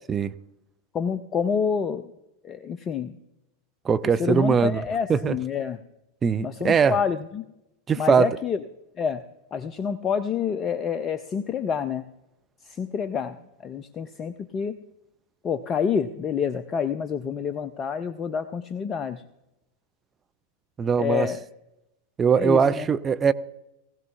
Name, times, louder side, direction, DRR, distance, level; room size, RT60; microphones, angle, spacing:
voice 1, 0.9-2.1 2.4-3.2 4.2-5.8 6.4-7.4 8.0-8.6 9.0-9.2 9.5-12.0 12.7-14.8 15.4-19.2 21.0-21.5 22.3-22.9, left 6 dB, 25° left, 0.5 m, -28 dB
voice 2, 3.8-4.8 5.1-5.4 6.2-7.0 7.9-8.4 20.8-21.3 22.2-23.3, right 6 dB, 20° right, 0.5 m, -21 dB
19.5 x 16.0 x 2.5 m
figure-of-eight pair, 90°, 0 cm